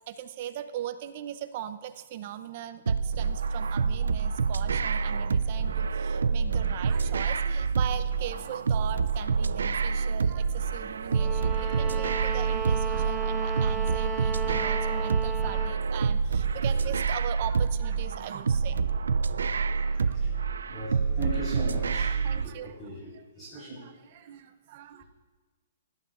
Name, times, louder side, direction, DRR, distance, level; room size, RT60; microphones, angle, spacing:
voice 1, 0.1-19.1 19.6-20.5 22.2-22.8 23.1-25.0, right 10 dB, 45° right, 10 dB, 0.7 m, -40 dB
sound 1, 2.9-22.5, right 5 dB, 85° right, 0.4 m, -27 dB
sound 2, 11.1-15.8, right 6 dB, 10° right, 1.3 m, -34 dB
voice 2, 19.3-20.4 20.7-23.9 24.2-24.3, right 1 dB, 15° left, -10 dB, 4.1 m, -39 dB
18.5 x 12.0 x 2.5 m, 1.3 s
hypercardioid pair, 145°, 0 cm